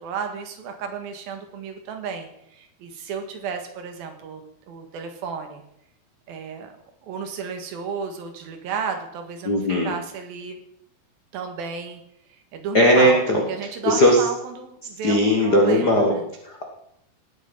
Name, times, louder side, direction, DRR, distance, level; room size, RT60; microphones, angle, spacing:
voice 1, 0.0-4.4 4.7-5.6 6.3-6.7 7.0-9.6 9.8-10.6 11.3-12.0 12.5-16.3, right 6 dB, 75° right, 5 dB, 3.4 m, -33 dB
voice 2, 9.4-9.9 12.7-13.4 13.8-14.2 15.0-16.1 16.5-16.6, left 1 dB, 55° left, 1 dB, 1.0 m, -18 dB
18.5 x 8.1 x 5.4 m, 0.76 s
omnidirectional pair, 4.4 m